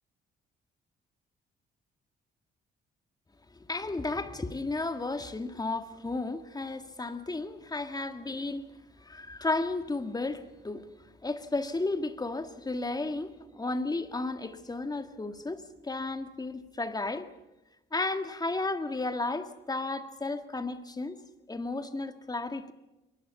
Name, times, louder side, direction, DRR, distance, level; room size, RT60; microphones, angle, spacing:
voice 1, 3.7-8.7 9.0-10.9 11.2-17.3 17.9-21.2 21.5-22.7, left 2 dB, 20° left, 1.9 m, -33 dB
23.0 x 20.0 x 7.1 m
cardioid pair, 90°, 20 cm